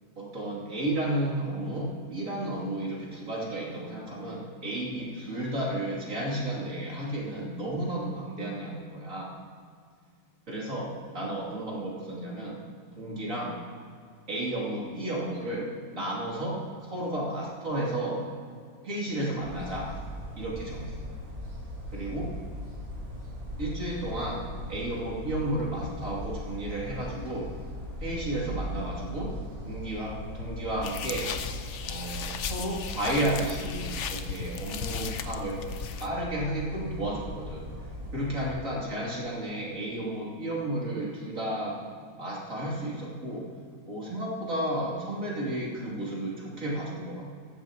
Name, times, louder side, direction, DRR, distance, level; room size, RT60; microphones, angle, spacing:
voice 1, 0.2-9.3 10.5-12.6 13.0-13.6 14.3-18.2 18.8-19.9 20.4-21.1 21.9-22.3 23.6-27.5 28.0-29.4 29.6-31.3 31.8-35.6 36.0-37.7 38.1-41.8 42.2-43.5 43.9-47.3, right 1 dB, 40° right, -5 dB, 3.3 m, -32 dB
sound 1, 19.4-38.6, equal, 75° right, 3.5 m, -39 dB
sound 2, 30.8-36.1, left 7 dB, 85° left, 0.6 m, -36 dB
16.0 x 13.5 x 3.0 m, 2.2 s
omnidirectional pair, 2.1 m